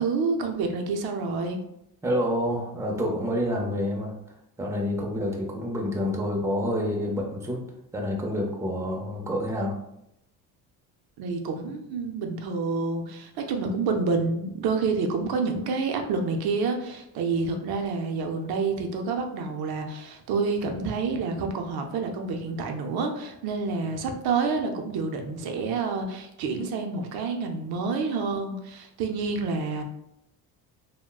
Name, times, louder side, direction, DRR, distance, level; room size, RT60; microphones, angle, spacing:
voice 1, 0.0-1.6 11.2-29.8, right 4 dB, 65° right, 4 dB, 0.5 m, -28 dB
voice 2, 2.0-4.2 4.6-7.6 7.9-9.8, equal, 5° right, -1 dB, 0.5 m, -28 dB
3.5 x 2.1 x 2.3 m, 0.81 s
cardioid pair, 105°, 40 cm